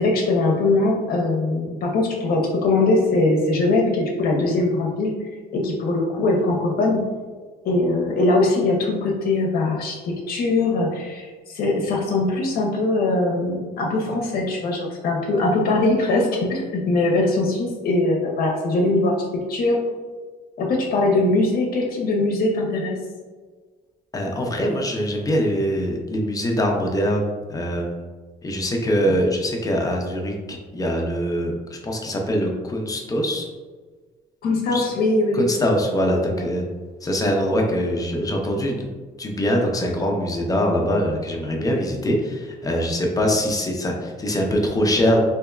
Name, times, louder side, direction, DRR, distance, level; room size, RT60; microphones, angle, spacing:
voice 1, 0.0-7.0 7.6-19.1 19.5-19.8 20.6-23.0 29.0-29.1 34.4-35.4 36.3-36.4, left 2 dB, 60° left, -1 dB, 0.7 m, -21 dB
voice 2, 24.1-28.1 28.4-33.5 34.7-34.9 35.3-36.6 37.0-38.9 39.2-45.3, equal, 20° left, 0 dB, 0.5 m, -23 dB
3.4 x 2.9 x 2.3 m, 1.4 s
cardioid pair, 110°, 17 cm